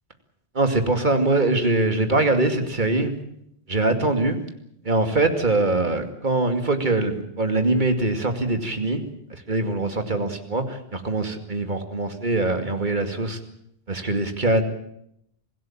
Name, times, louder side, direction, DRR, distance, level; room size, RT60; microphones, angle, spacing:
voice 1, 0.5-3.1 3.7-4.4 4.8-9.0 9.5-13.4 13.9-14.6, right 2 dB, 50° right, 7 dB, 2.6 m, -23 dB
25.5 x 16.5 x 8.8 m, 0.74 s
omnidirectional pair, 1.0 m